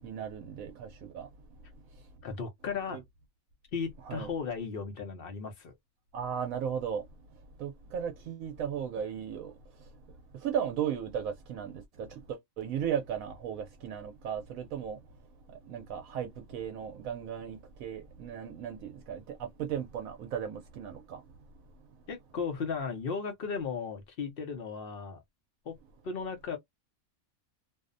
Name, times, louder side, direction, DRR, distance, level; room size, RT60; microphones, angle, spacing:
voice 1, 0.0-0.9 1.1-1.3 2.9-3.0 4.0-4.3 6.1-7.0 7.6-9.5 10.4-15.0 15.7-21.2, right 8 dB, 75° right, 1.0 m, -36 dB
voice 2, 2.2-3.0 3.7-5.7 22.1-25.2 25.7-25.8 26.0-26.6, left 5 dB, 55° left, 0.7 m, -36 dB
2.6 x 2.0 x 2.4 m
omnidirectional pair, 1.5 m